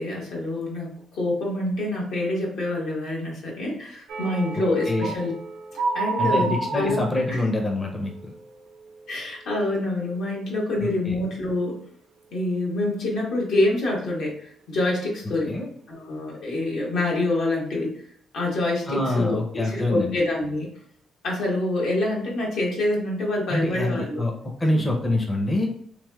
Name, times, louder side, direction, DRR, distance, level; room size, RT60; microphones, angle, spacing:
voice 1, 0.0-5.3 5.7-7.4 9.1-11.8 12.3-15.5 15.9-17.9 18.3-20.7 21.2-24.2 24.7-24.8, left 2 dB, 75° left, -3 dB, 1.2 m, -26 dB
sound 1, 4.1-9.9 10.1-10.5 10.9-11.1, right 3 dB, 90° right, 0.6 m, -32 dB
voice 2, 6.2-8.3 10.8-11.2 15.5-15.7 18.9-20.2 23.5-25.7, left 1 dB, 20° left, 1 dB, 0.6 m, -25 dB
3.1 x 3.0 x 2.2 m, 0.65 s
cardioid pair, 90°, 0 cm